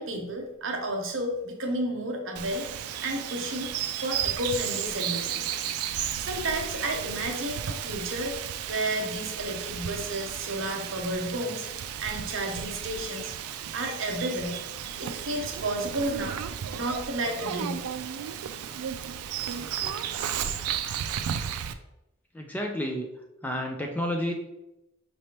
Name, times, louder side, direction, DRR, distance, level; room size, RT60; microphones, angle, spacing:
voice 1, 0.0-2.7 3.0-3.7 4.0-5.5 6.2-11.7 12.0-13.3 13.7-14.6 15.0-16.4 16.7-17.8, right 1 dB, 60° right, 3 dB, 0.7 m, -32 dB
Bird vocalization bird call bird song, 2.4-21.7, right 9 dB, 85° right, 0.3 m, -34 dB
voice 2, 22.3-23.1 23.4-24.3, equal, 5° left, 1 dB, 0.3 m, -30 dB
5.1 x 3.3 x 2.9 m, 0.90 s
head